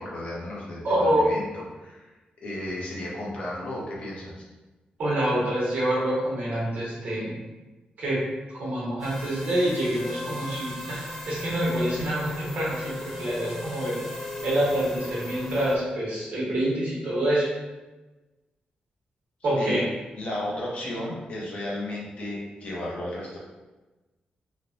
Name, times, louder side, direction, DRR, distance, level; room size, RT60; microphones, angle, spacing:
voice 1, 0.0-2.1 2.4-4.4 19.6-19.8 20.2-23.4, left 1 dB, 50° left, -4 dB, 0.6 m, -34 dB
voice 2, 0.8-1.3 5.0-7.3 8.0-8.2 8.5-14.0 14.4-17.5 19.4-19.8, right 1 dB, 65° right, -6 dB, 1.0 m, -26 dB
sound 1, 9.0-15.8, left 1 dB, 10° left, 0.4 m, -36 dB
3.0 x 2.1 x 2.6 m, 1.1 s
wide cardioid pair, 180°, 3 cm